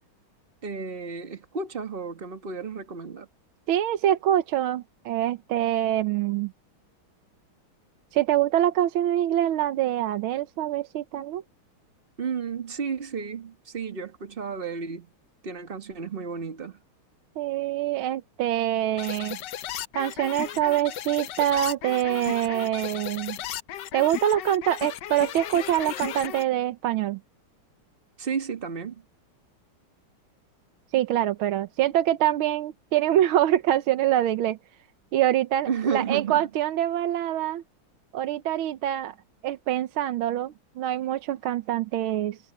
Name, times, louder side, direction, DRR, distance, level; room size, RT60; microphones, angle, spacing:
voice 1, 0.6-3.3 12.2-15.1 15.4-16.8 28.2-29.0 35.7-36.4, right 5 dB, 30° right, 1.7 m, -32 dB
voice 2, 3.7-6.5 8.1-11.4 17.4-19.4 20.0-23.4 23.9-27.2 30.9-34.6 35.1-37.6 38.1-39.2 39.4-42.4, right 12 dB, 75° right, 1.6 m, -25 dB
sound 1, 19.0-26.4, left 12 dB, 70° left, 1.3 m, -36 dB
omnidirectional pair, 2.3 m